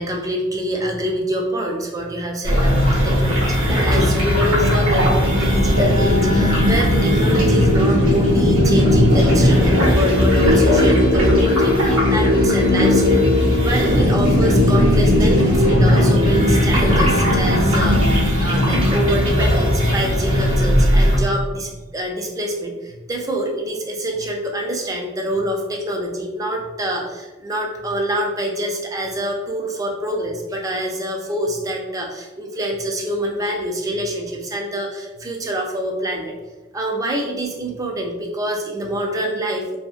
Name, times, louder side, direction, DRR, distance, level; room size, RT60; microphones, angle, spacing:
voice 1, 0.0-36.3 36.7-39.8, right 1 dB, 15° right, 0 dB, 0.3 m, -25 dB
sound 1, 2.4-21.2, left 1 dB, 85° right, 1.0 m, -16 dB
2.7 x 2.4 x 2.4 m, 1.1 s
head